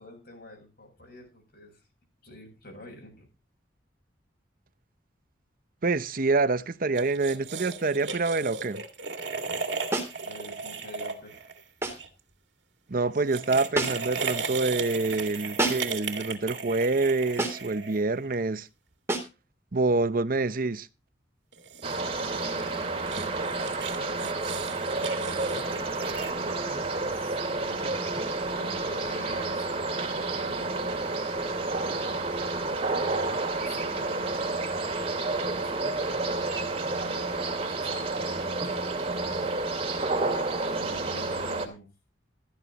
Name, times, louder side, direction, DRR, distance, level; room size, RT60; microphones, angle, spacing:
voice 1, 0.0-1.8 2.2-3.3 10.2-11.4 25.0-28.0 28.3-29.7 30.3-32.2 33.6-34.8 35.3-36.2 37.3-39.5 40.5-41.9, left 1 dB, 60° left, 7.5 m, -48 dB
voice 2, 5.8-8.8 12.9-18.7 19.7-20.9, right 3 dB, 50° right, 0.8 m, -26 dB
sound 1, 6.9-12.1 13.1-18.3 21.5-26.3, right 5 dB, 70° right, 2.1 m, -36 dB
sound 2, 9.9-10.2 11.8-12.1 13.7-14.2 15.6-16.0 17.4-17.7 19.1-19.4, right 2 dB, 15° right, 3.2 m, -29 dB
sound 3, 21.8-41.7, right 3 dB, 35° right, 2.5 m, -30 dB
15.5 x 13.5 x 3.0 m
head